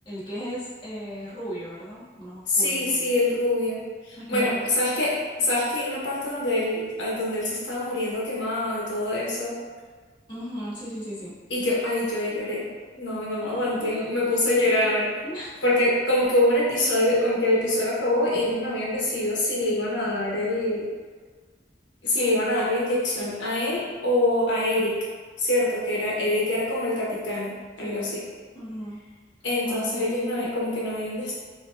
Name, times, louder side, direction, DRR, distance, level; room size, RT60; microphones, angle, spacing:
voice 1, 0.0-3.1 4.2-4.6 10.3-11.3 13.4-14.3 14.7-14.8 15.2-15.5 26.2-26.4 27.8-28.1 28.5-29.0 29.6-30.1 30.4-30.5, equal, 25° left, -10 dB, 1.3 m, -36 dB
voice 2, 2.5-9.6 11.5-12.7 13.0-15.1 15.6-20.9 22.0-25.0 25.4-28.2 29.4-31.3, left 1 dB, 85° left, -6 dB, 1.1 m, -25 dB
6.4 x 2.9 x 2.5 m, 1.5 s
head